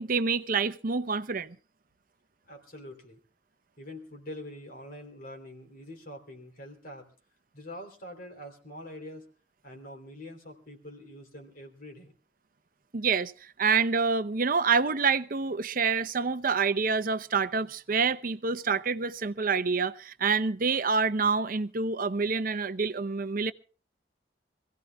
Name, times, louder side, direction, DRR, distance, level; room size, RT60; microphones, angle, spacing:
voice 1, 0.0-1.6 12.9-13.3 13.6-23.5, right 5 dB, 50° right, 0.7 m, -27 dB
voice 2, 2.5-3.2 3.8-7.1 7.5-9.3 9.6-12.1, left 1 dB, 50° left, 3.5 m, -45 dB
26.0 x 16.5 x 2.3 m
head